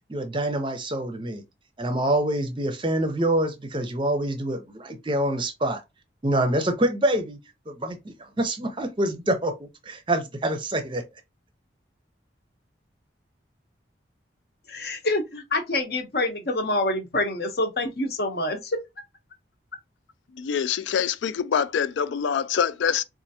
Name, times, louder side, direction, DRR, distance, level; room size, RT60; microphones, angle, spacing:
voice 1, 0.1-1.4 1.8-5.8 6.2-7.4 7.7-8.0 8.4-11.0, right 1 dB, 25° right, 0.5 m, -26 dB
voice 2, 14.7-18.8, left 2 dB, 55° left, 0.8 m, -26 dB
voice 3, 20.3-23.0, left 7 dB, 80° left, 0.3 m, -25 dB
4.3 x 2.5 x 2.7 m
head